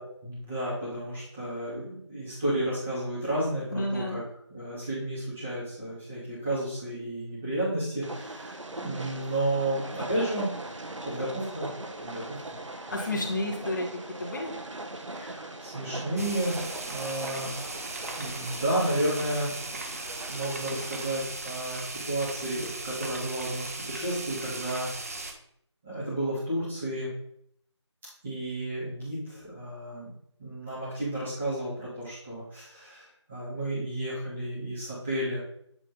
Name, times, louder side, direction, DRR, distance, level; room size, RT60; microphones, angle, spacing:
voice 1, 0.0-4.2 4.5-10.5 11.0-11.7 12.0-12.4 12.9-13.0 15.1-17.5 18.2-19.5 20.3-24.9 25.8-27.1 28.2-30.1 30.4-35.4, right 1 dB, ahead, -13 dB, 0.5 m, -32 dB
voice 2, 3.7-4.2 12.9-13.9 14.2-14.5, left 1 dB, 40° left, -1 dB, 1.8 m, -31 dB
Train, 8.0-21.2, right 2 dB, 90° right, 1.1 m, -40 dB
sound 1, 16.2-25.3, right 2 dB, 30° right, 0.8 m, -38 dB
9.1 x 3.5 x 5.5 m, 0.70 s
figure-of-eight pair, 170°, 15 cm